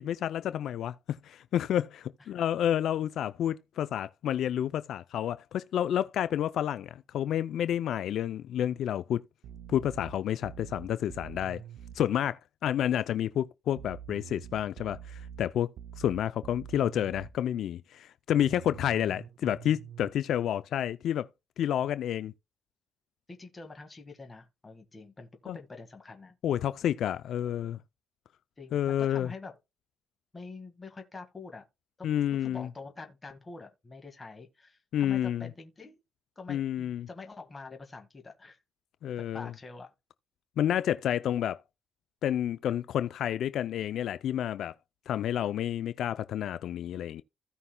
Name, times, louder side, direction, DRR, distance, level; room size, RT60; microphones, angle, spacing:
voice 1, 0.0-9.2 9.7-11.6 12.0-15.7 16.0-21.3 21.6-22.3 25.5-25.6 26.4-27.8 28.7-29.3 32.0-32.7 34.9-35.5 36.5-37.1 39.0-39.5 40.6-41.6 42.2-44.7 45.1-47.2, left 10 dB, 75° left, 0.4 m, -30 dB
sound 1, 9.4-12.0 13.8-17.4 18.4-20.1, right 9 dB, 80° right, 0.5 m, -46 dB
voice 2, 23.3-26.4 27.4-27.7 28.6-29.6 30.3-31.6 32.0-32.1 32.4-36.0 36.4-38.6 39.3-39.9, left 3 dB, 25° left, 1.7 m, -46 dB
16.0 x 5.5 x 2.2 m
cardioid pair, 90°, 0 cm